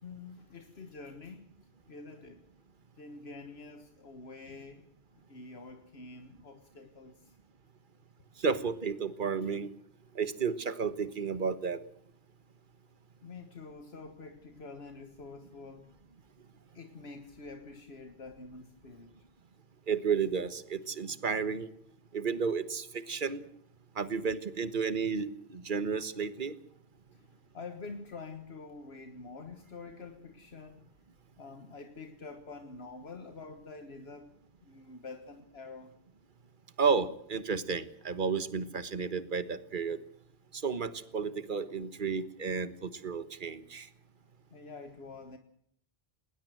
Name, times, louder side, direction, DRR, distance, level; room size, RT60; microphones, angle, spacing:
voice 1, 0.0-1.5 1.9-2.4 3.0-7.4 13.2-15.9 16.7-19.1 27.1-30.9 31.4-35.9 44.5-45.4, left 4 dB, 75° left, 1.7 m, -47 dB
voice 2, 8.4-9.7 10.1-11.8 19.9-21.7 22.1-23.4 23.9-26.5 36.8-40.0 40.5-43.9, right 5 dB, 50° right, 1.5 m, -32 dB
20.0 x 19.5 x 7.8 m
omnidirectional pair, 1.1 m